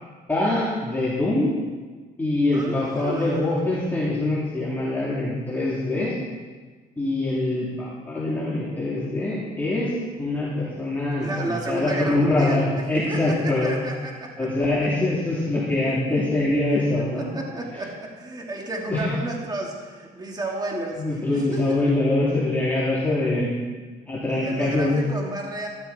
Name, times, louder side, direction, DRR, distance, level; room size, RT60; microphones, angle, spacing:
voice 1, 0.3-1.5 2.2-6.1 7.0-9.9 10.2-13.8 14.4-17.3 18.9-19.1 21.0-23.4 24.1-25.0, left 2 dB, 10° left, -8 dB, 3.4 m, -24 dB
voice 2, 2.5-3.8 11.2-14.5 15.9-16.0 16.7-16.8 17.2-21.7 23.4-23.8 24.3-25.7, right 2 dB, 25° right, -1 dB, 2.6 m, -32 dB
13.5 x 13.5 x 4.4 m, 1.4 s
cardioid pair, 110°, 17 cm